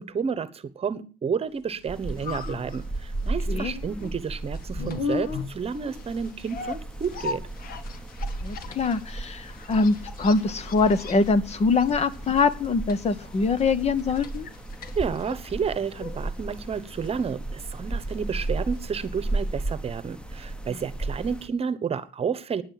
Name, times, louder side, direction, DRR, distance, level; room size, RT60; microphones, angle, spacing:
voice 1, 0.0-7.4 15.0-22.6, right 6 dB, 35° right, 15 dB, 1.1 m, -31 dB
sound 1, 1.7-19.7 20.0-20.1, left 5 dB, 60° left, 1.6 m, -39 dB
sound 2, 1.9-21.5, right 2 dB, 5° left, 1.1 m, -35 dB
voice 2, 8.4-14.5 20.7-20.8, left 4 dB, 40° left, 16 dB, 1.0 m, -24 dB
10.0 x 8.9 x 7.5 m, 0.34 s
cardioid pair, 110°, 17 cm